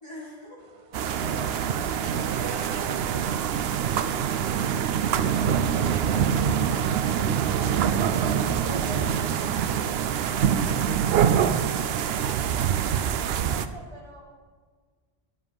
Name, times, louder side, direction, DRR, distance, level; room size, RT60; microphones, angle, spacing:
voice 1, 0.0-1.2 2.0-4.3, equal, 30° left, -6 dB, 2.1 m, -45 dB
sound 1, 0.9-13.7, right 8 dB, 75° right, 0.8 m, -25 dB
voice 2, 1.2-2.3 8.4-9.7 12.1-12.6 13.3-14.3, equal, 35° right, -3 dB, 1.9 m, -44 dB
sound 2, 4.9-13.2, right 6 dB, 55° right, 0.4 m, -37 dB
10.5 x 7.4 x 5.2 m, 1.5 s
omnidirectional pair, 1.0 m